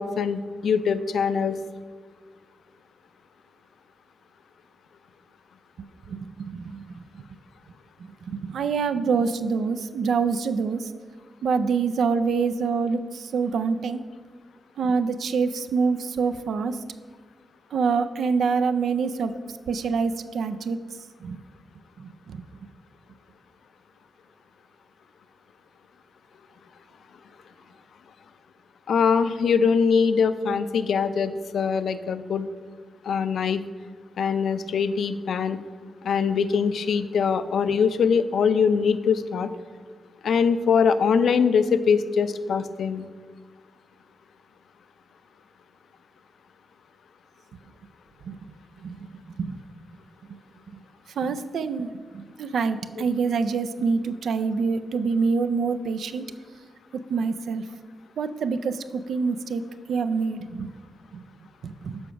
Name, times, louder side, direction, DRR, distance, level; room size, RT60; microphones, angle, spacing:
voice 1, 0.0-1.6 28.9-32.5 33.0-33.6 34.2-35.6 36.0-39.5 40.2-43.1 53.0-53.1, left 6 dB, 80° left, 12 dB, 0.4 m, -22 dB
voice 2, 5.8-6.8 7.1-7.2 8.0-10.9 11.4-14.0 14.8-16.8 17.7-19.3 19.7-20.8 21.2-21.4 22.0-22.4 48.3-48.4 48.8-49.6 50.7-50.8 51.2-51.9 52.1-56.2 57.1-57.6 58.2-59.6 59.9-60.7 61.1-61.2 61.6-62.0, right 5 dB, 85° right, 11 dB, 0.4 m, -26 dB
7.0 x 5.0 x 5.7 m, 1.5 s
wide cardioid pair, 150°, 0 cm